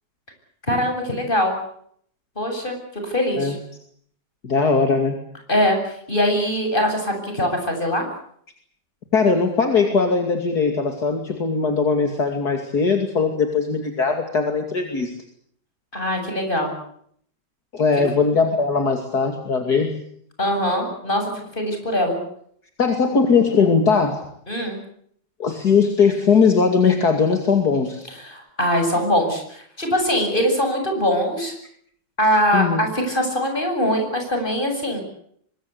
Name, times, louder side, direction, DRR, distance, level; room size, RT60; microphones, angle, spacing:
voice 1, 0.7-1.6 2.4-2.8 3.0-3.6 5.5-8.1 15.9-16.7 20.4-22.2 24.5-24.8 28.2-31.5 32.2-35.0, equal, 25° left, 4 dB, 8.3 m, -22 dB
voice 2, 4.4-5.2 9.1-15.2 17.7-19.9 22.8-24.2 25.4-28.1 32.5-32.8, left 5 dB, 55° left, 5 dB, 3.1 m, -19 dB
25.0 x 21.0 x 8.5 m, 0.66 s
omnidirectional pair, 2.0 m